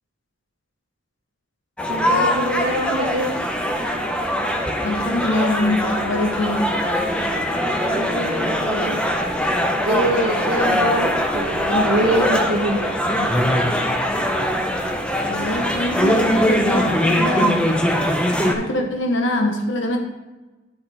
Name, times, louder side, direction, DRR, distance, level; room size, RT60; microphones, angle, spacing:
sound 1, 1.8-18.5, equal, 5° left, 0.6 m, -21 dB
voice 1, 1.9-3.3 7.7-9.0 9.8-12.8 18.6-18.9, right 1 dB, 65° right, -4 dB, 1.3 m, -24 dB
voice 2, 4.8-6.7 11.7-11.8 12.7-13.4 15.3-17.7 18.0-20.0, left 1 dB, 75° left, 3 dB, 0.8 m, -24 dB
10.0 x 5.6 x 3.4 m, 1.1 s
head